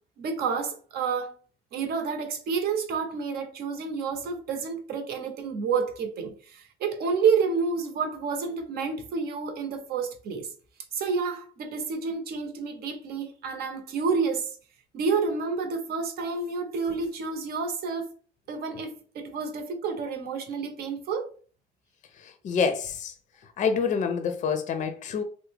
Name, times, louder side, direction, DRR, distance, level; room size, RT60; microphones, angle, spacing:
voice 1, 0.2-1.4 1.7-10.5 10.9-14.5 14.9-18.1 18.5-21.3, right 5 dB, 65° right, 0.8 m, -29 dB
voice 2, 22.2-23.1 23.6-25.2, left 6 dB, 45° left, 0.5 m, -27 dB
3.4 x 2.1 x 3.3 m
cardioid pair, 110°, 17 cm